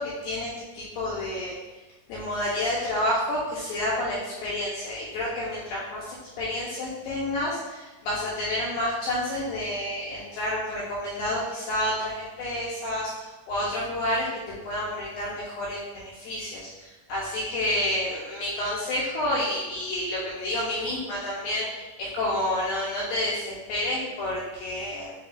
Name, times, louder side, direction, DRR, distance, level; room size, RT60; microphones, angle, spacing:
voice 1, 0.0-1.5 2.1-25.1, left 1 dB, 80° left, -6 dB, 2.2 m, -29 dB
7.5 x 2.9 x 2.4 m, 1.2 s
omnidirectional pair, 5.0 m